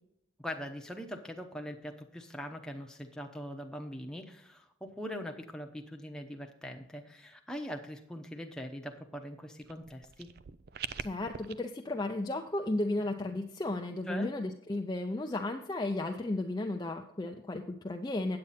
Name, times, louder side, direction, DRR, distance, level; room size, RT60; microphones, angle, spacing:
voice 1, 0.4-10.3 14.1-14.3, equal, 5° left, 3 dB, 0.8 m, -42 dB
sound 1, 9.6-11.5, right 8 dB, 50° right, 0.4 m, -43 dB
voice 2, 11.0-18.4, left 2 dB, 20° left, 2 dB, 0.5 m, -34 dB
8.8 x 8.6 x 4.2 m, 0.77 s
head